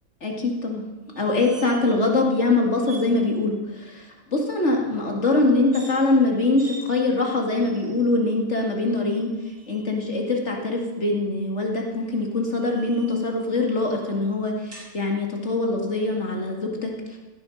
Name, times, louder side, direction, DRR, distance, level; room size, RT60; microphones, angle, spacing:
voice 1, 0.2-0.8 1.2-9.3 9.7-17.2, left 2 dB, 40° left, 1 dB, 2.7 m, -23 dB
sound 1, 1.1-2.0 2.3-2.4 2.8-3.1 5.6-6.0 6.6-6.8 7.5-8.1 9.1-9.9 11.8-13.4 14.7-14.9, right 3 dB, 60° right, 4.3 m, -46 dB
16.5 x 11.5 x 6.5 m, 1.2 s
omnidirectional pair, 1.8 m